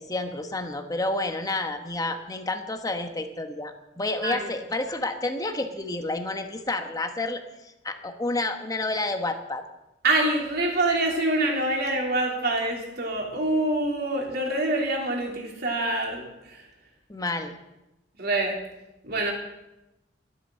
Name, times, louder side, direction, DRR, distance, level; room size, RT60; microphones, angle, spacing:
voice 1, 0.0-9.6 17.1-17.6, left 2 dB, 20° left, 6 dB, 1.2 m, -30 dB
voice 2, 10.0-16.6 18.2-18.6 19.0-19.3, right 2 dB, 60° right, 0 dB, 3.3 m, -26 dB
13.0 x 9.2 x 7.6 m, 0.95 s
head